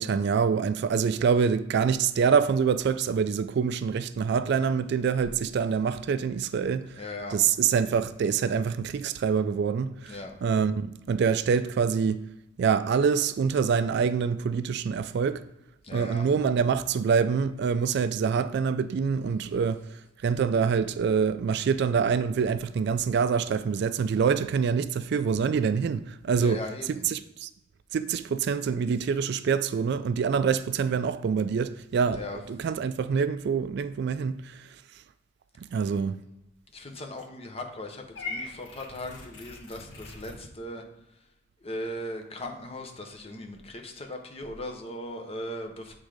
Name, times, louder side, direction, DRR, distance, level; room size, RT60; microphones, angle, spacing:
voice 1, 0.0-7.0 7.3-12.2 12.6-15.5 15.9-26.6 26.9-27.5 27.9-32.2 32.5-34.7 35.6-36.2, right 6 dB, 60° right, 0.3 m, -26 dB
voice 2, 7.0-7.4 10.1-10.3 15.8-16.2 26.3-27.0 32.1-32.4 36.7-40.8 41.6-46.0, left 1 dB, 30° left, 0.9 m, -38 dB
Purr / Meow, 38.2-40.4, left 3 dB, 65° left, 1.4 m, -40 dB
7.9 x 3.7 x 5.0 m
head